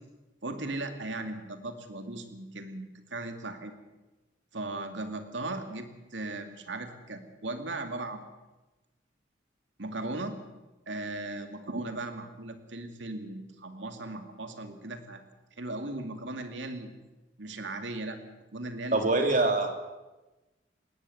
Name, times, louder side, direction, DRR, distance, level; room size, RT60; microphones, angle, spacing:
voice 1, 0.4-3.8 4.5-8.2 9.8-10.4 10.9-15.2 15.6-16.9 17.4-18.2 18.5-19.1, right 2 dB, 90° right, 7 dB, 2.4 m, -37 dB
voice 2, 18.9-19.7, right 2 dB, 45° right, 4 dB, 3.0 m, -24 dB
19.5 x 18.5 x 8.0 m, 1.1 s
head